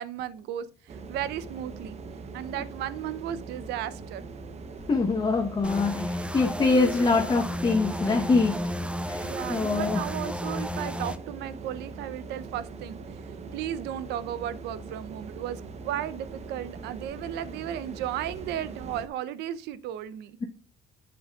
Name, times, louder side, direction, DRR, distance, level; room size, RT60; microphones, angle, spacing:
voice 1, 0.0-2.0 2.3-4.2 9.2-13.0 13.5-20.4, right 11 dB, 85° right, 0.7 m, -35 dB
sound 1, 0.9-19.1, right 4 dB, 40° right, 0.8 m, -42 dB
voice 2, 4.9-8.7 9.1-10.0, left 4 dB, 25° left, 1.0 m, -24 dB
sound 2, 5.6-11.2, equal, 5° right, 0.6 m, -33 dB
7.8 x 7.3 x 2.3 m
cardioid pair, 110°, 17 cm